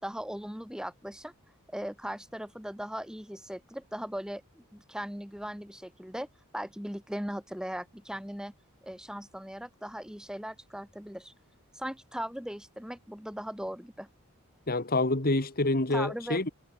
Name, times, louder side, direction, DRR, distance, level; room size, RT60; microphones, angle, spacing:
voice 1, 0.0-1.3 1.7-6.3 6.5-8.5 8.8-11.3 11.7-14.1 15.9-16.5, equal, 5° right, 3.2 m, -38 dB
voice 2, 14.7-16.5, left 2 dB, 40° left, 2.3 m, -27 dB
head